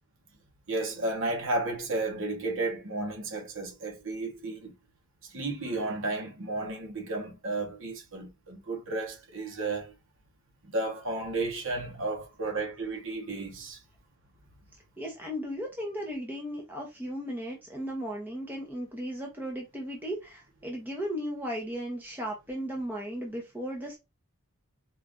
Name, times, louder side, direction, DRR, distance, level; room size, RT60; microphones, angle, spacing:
voice 1, 0.7-4.7 5.3-9.9 10.6-13.8, right 2 dB, 60° right, 1.2 m, -33 dB
voice 2, 15.0-24.0, equal, 10° right, 0.9 m, -36 dB
4.4 x 2.5 x 3.7 m
head